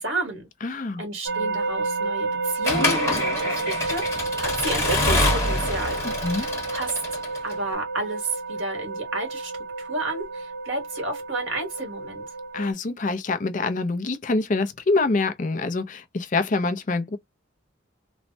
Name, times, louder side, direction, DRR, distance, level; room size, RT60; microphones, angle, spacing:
voice 1, 0.0-0.5 1.0-4.0 4.4-6.0 6.3-7.0 7.4-9.5 9.8-12.2, right 2 dB, 90° right, 1.5 m, -31 dB
voice 2, 0.6-1.0 6.0-6.5 12.5-17.2, left 3 dB, 40° left, 0.5 m, -25 dB
sound 1, 1.2-12.7, right 3 dB, 60° right, 0.9 m, -30 dB
Accelerating revving vroom / Mechanisms, 2.6-7.5, left 2 dB, 15° left, 1.0 m, -25 dB
3.0 x 2.1 x 2.6 m
head